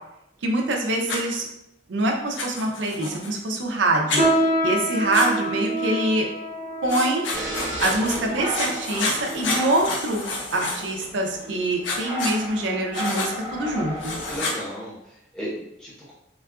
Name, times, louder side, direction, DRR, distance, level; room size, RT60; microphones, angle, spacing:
voice 1, 0.4-1.5 1.9-4.2 4.6-6.3 6.8-7.2 7.8-10.3 10.5-14.2, right 2 dB, 80° right, 1 dB, 0.5 m, -24 dB
Writing, 1.1-1.2 2.4-3.3 4.1-4.2 5.1-5.3 6.9-8.2 8.5-11.0 11.8-12.4 12.9-13.3 14.0-14.6, left 3 dB, 85° left, 0.6 m, -29 dB
sound 1, 4.2-9.8 10.5-10.6 11.4-11.7 12.1-12.2 12.9-13.0, right 1 dB, 40° left, 0.6 m, -27 dB
sound 2, 7.3-14.4, equal, 50° right, 1.0 m, -34 dB
voice 2, 13.7-16.1, equal, 5° left, -9 dB, 0.9 m, -36 dB
3.6 x 2.3 x 2.4 m, 0.83 s
head